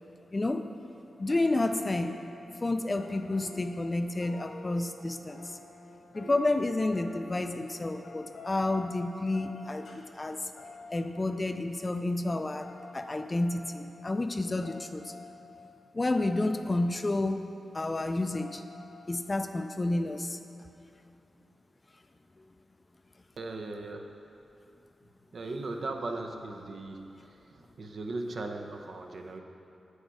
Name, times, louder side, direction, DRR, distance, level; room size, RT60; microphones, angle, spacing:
voice 1, 0.3-0.6 1.2-2.1 2.6-5.6 6.1-10.4 10.9-12.7 12.9-15.1 15.9-17.4 17.7-18.6 19.1-20.4, left 2 dB, 25° left, 8 dB, 0.4 m, -30 dB
sound 1, 1.2-11.7 12.1-17.6 18.2-19.5, left 2 dB, 80° left, 1.4 m, -50 dB
voice 2, 23.4-24.1 25.3-29.4, right 2 dB, 65° right, 4 dB, 0.7 m, -38 dB
7.6 x 6.5 x 4.7 m, 2.9 s
wide cardioid pair, 90°, 0 cm